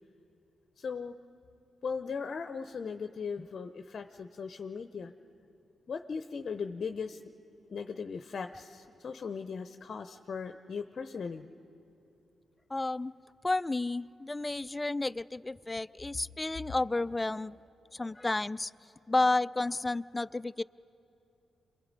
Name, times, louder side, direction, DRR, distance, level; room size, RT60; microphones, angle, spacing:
voice 1, 0.8-1.1 1.8-5.1 5.9-7.2 7.7-11.5, left 5 dB, 60° left, 7 dB, 0.7 m, -38 dB
voice 2, 12.7-13.1 13.4-17.6 17.9-18.7 19.1-20.6, left 2 dB, 20° left, 17 dB, 0.4 m, -31 dB
27.0 x 22.0 x 5.3 m, 2.8 s
supercardioid pair, 50°, 0 cm